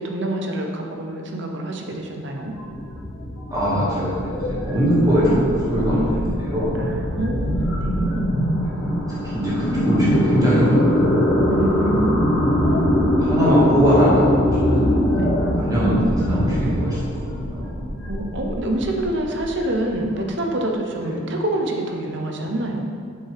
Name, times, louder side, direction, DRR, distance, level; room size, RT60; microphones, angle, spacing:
voice 1, 0.0-2.5 6.8-8.3 11.5-12.9 15.2-15.3 18.1-22.8, right 1 dB, 60° right, 2 dB, 0.8 m, -26 dB
sound 1, 2.4-20.2, equal, 80° left, 1.2 m, -23 dB
voice 2, 3.5-6.7 8.6-11.0 11.7-11.9 13.0-14.9 15.6-17.7 21.0-21.2, equal, 20° right, -9 dB, 2.0 m, -21 dB
7.4 x 6.8 x 3.5 m, 2.2 s
head